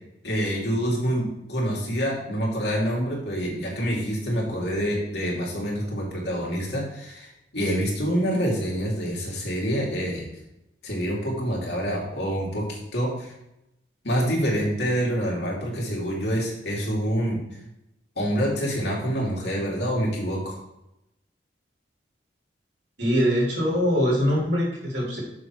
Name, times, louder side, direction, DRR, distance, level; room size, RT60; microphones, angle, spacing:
voice 1, 0.2-10.3 10.8-13.3 14.0-17.4 18.2-20.6, equal, 65° left, -2 dB, 2.7 m, -26 dB
voice 2, 23.0-25.2, equal, 75° right, -4 dB, 3.6 m, -23 dB
6.8 x 6.8 x 4.7 m, 0.87 s
head